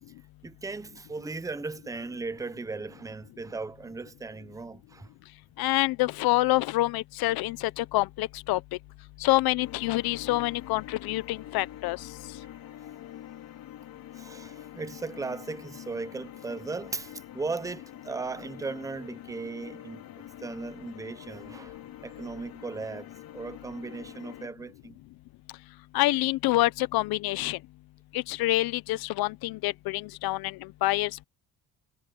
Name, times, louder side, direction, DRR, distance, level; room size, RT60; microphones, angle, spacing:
voice 1, 0.4-5.1 14.1-25.0, right 3 dB, 10° right, 0.7 m, -37 dB
voice 2, 5.6-8.6 9.2-12.0 25.9-27.6 28.1-31.2, left 18 dB, 85° left, 0.8 m, -27 dB
sound 1, 9.6-24.5, left 12 dB, 70° left, 4.5 m, -46 dB
cardioid pair, 130°, 36 cm